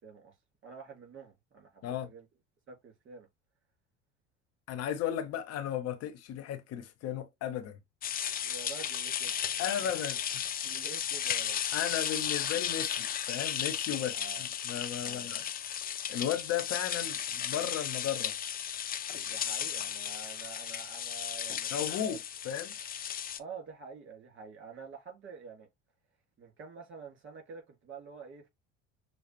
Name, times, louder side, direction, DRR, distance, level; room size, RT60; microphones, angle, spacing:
voice 1, 0.0-0.3 0.6-2.3 2.7-3.3 8.4-9.7 10.6-11.6 14.1-14.5 15.0-15.3 19.2-22.2 23.4-25.7 26.4-28.5, right 5 dB, 35° right, 2.9 m, -48 dB
voice 2, 4.7-7.8 9.6-10.2 11.7-15.4 16.1-18.4 21.7-22.2 22.4-22.7, left 10 dB, 45° left, 0.9 m, -35 dB
sound 1, 8.0-23.4, left 9 dB, 25° left, 0.5 m, -35 dB
6.4 x 2.4 x 3.0 m
figure-of-eight pair, 65°, 35 cm